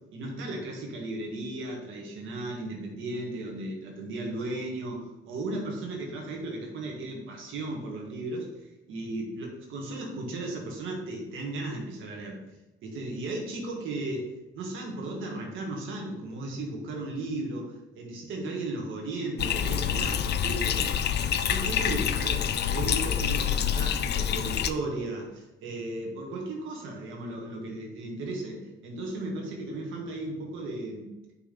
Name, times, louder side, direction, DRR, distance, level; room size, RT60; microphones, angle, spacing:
voice 1, 0.1-8.5 8.9-12.4 12.8-17.6 17.9-21.0 21.4-31.1, right 2 dB, 85° right, 0 dB, 1.7 m, -35 dB
Bathtub (filling or washing), 19.4-24.7, left 8 dB, 60° left, 0.5 m, -27 dB
5.6 x 3.4 x 5.8 m, 1.0 s
cardioid pair, 90°, 20 cm